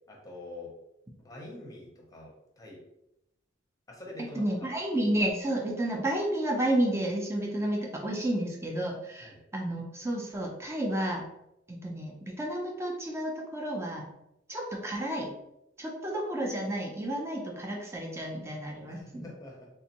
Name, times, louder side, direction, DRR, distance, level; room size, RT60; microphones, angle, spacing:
voice 1, 0.1-0.7 1.2-2.8 3.9-4.7 9.2-9.4 18.9-19.7, left 1 dB, 20° left, -2 dB, 0.8 m, -45 dB
voice 2, 4.4-11.3 11.7-14.1 14.5-15.3 15.8-19.3, right 1 dB, 15° right, 0 dB, 0.6 m, -31 dB
3.5 x 3.1 x 2.9 m, 0.83 s
head